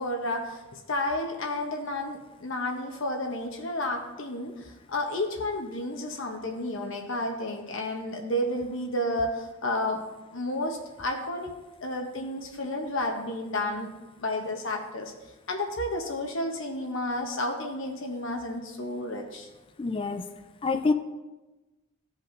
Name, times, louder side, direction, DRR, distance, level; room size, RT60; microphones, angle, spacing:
voice 1, 0.0-10.0 10.3-11.5 11.8-13.9 14.2-15.1 15.5-19.5, left 1 dB, 60° left, 2 dB, 0.8 m, -31 dB
voice 2, 19.8-20.2 20.6-20.9, left 3 dB, 25° left, 8 dB, 0.3 m, -26 dB
15.0 x 5.2 x 2.6 m, 1.1 s
head